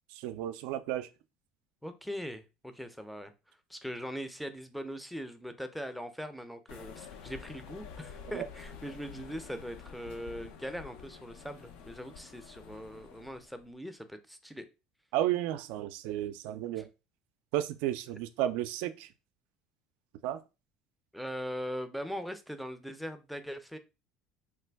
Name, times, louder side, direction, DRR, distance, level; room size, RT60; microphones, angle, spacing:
voice 1, 0.1-1.1 8.3-8.4 15.1-16.9 17.5-19.1 20.2-20.4, right 13 dB, 75° right, 0.4 m, -33 dB
voice 2, 1.8-3.3 3.7-14.7 16.8-16.9 21.1-23.8, equal, ahead, 0.5 m, -41 dB
sound 1, 6.7-13.6, left 6 dB, 75° left, 0.5 m, -49 dB
3.2 x 2.2 x 3.3 m
supercardioid pair, 100°, 2 cm